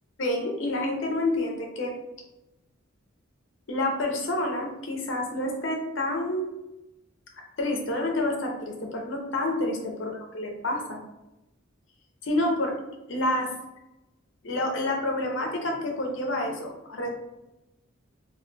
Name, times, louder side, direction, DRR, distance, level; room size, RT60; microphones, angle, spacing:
voice 1, 0.2-1.9 3.7-6.5 7.6-11.0 12.2-12.7 13.1-13.5 14.4-17.1, left 1 dB, 60° left, 1 dB, 0.6 m, -28 dB
3.9 x 2.3 x 2.2 m, 0.95 s
head